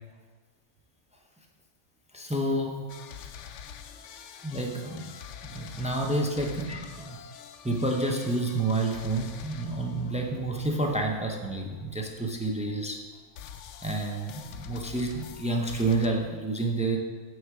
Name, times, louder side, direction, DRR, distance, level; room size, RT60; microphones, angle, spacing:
voice 1, 2.1-2.9 4.4-5.1 5.4-7.2 7.6-13.0 13.8-17.0, right 2 dB, 10° right, 1 dB, 0.3 m, -29 dB
sound 1, 2.9-12.9 13.4-16.1, left 8 dB, 65° left, 0.8 m, -46 dB
7.2 x 6.4 x 4.7 m, 1.4 s
omnidirectional pair, 1.5 m